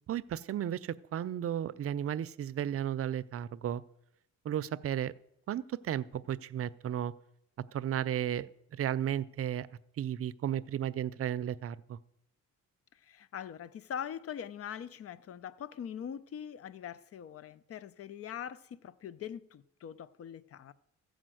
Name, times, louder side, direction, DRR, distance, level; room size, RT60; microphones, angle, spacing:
voice 1, 0.1-3.8 4.4-5.1 5.5-7.1 7.7-9.7 10.0-12.0, right 10 dB, 50° right, 0.5 m, -34 dB
voice 2, 13.0-20.7, left 9 dB, 50° left, 0.6 m, -42 dB
14.5 x 5.0 x 7.7 m
cardioid pair, 90°, 30 cm